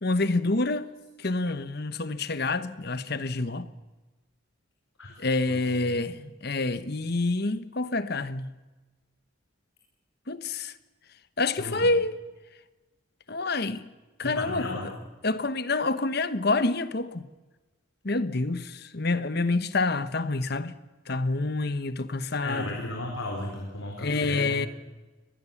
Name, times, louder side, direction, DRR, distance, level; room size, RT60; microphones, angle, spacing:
voice 1, 0.0-0.9 1.2-3.7 5.2-8.5 10.3-10.7 11.4-12.2 13.3-13.8 14.2-14.7 15.2-17.3 18.0-20.7 21.1-22.8 24.0-24.7, left 3 dB, 50° left, 1.1 m, -27 dB
voice 2, 11.6-11.9 14.2-14.9 22.4-24.6, left 1 dB, 75° left, 4.3 m, -34 dB
24.0 x 20.0 x 7.2 m
head